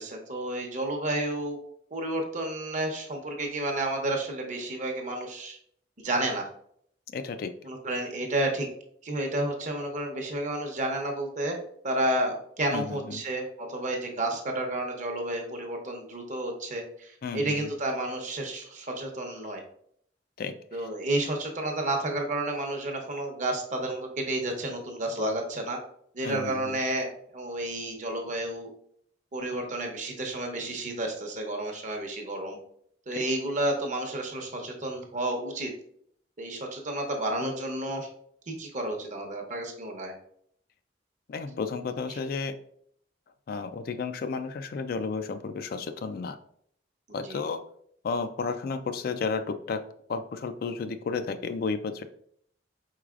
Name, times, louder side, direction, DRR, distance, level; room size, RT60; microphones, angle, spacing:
voice 1, 0.0-1.6 1.9-5.6 6.0-6.5 7.6-8.7 9.0-11.6 11.8-19.6 20.7-25.8 26.1-28.7 29.3-32.6 33.1-35.7 36.4-38.1 38.5-40.1 42.1-42.2 47.1-47.4, right 1 dB, 45° right, 2 dB, 0.8 m, -31 dB
voice 2, 7.1-7.5 12.7-13.2 17.2-17.7 20.4-20.6 26.2-26.8 33.1-33.2 41.3-42.6 43.5-46.4 47.1-47.6 48.0-49.8 50.1-52.0, left 4 dB, 55° left, 10 dB, 0.3 m, -32 dB
4.7 x 3.9 x 2.4 m, 0.66 s
head